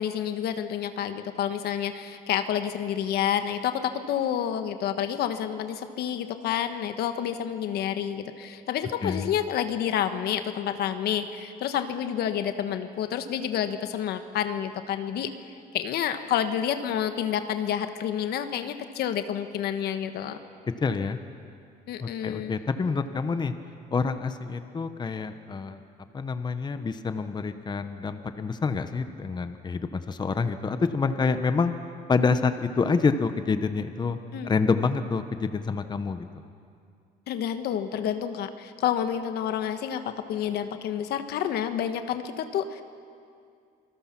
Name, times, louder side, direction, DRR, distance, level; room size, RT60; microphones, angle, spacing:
voice 1, 0.0-15.3 15.7-20.4 21.9-22.6 34.3-34.5 37.3-42.8, left 9 dB, 70° left, 9 dB, 1.3 m, -29 dB
voice 2, 9.0-9.3 20.8-21.2 22.0-23.5 23.9-25.8 26.1-31.7 32.1-34.2 34.4-36.2, left 4 dB, 25° left, 9 dB, 1.0 m, -27 dB
27.0 x 20.0 x 5.9 m, 2.4 s
cardioid pair, 110°, 17 cm